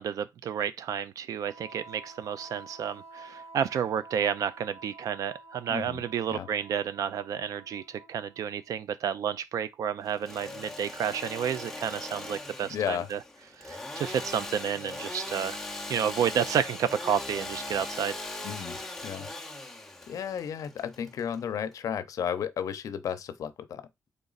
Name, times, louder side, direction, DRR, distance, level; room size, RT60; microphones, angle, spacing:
voice 1, 0.0-13.2 13.6-15.6 15.9-18.2, right 8 dB, 70° right, 0.4 m, -31 dB
Wind instrument woodwind instrument, 1.4-8.8, right 3 dB, 55° right, 2.2 m, -50 dB
voice 2, 5.7-6.0 6.3-6.5 12.7-13.1 18.4-19.3 20.1-23.8, left 8 dB, 70° left, 0.6 m, -33 dB
Engine / Sawing, 10.1-21.7, left 2 dB, 5° left, 0.6 m, -40 dB
4.1 x 3.4 x 3.9 m
wide cardioid pair, 170°, 6 cm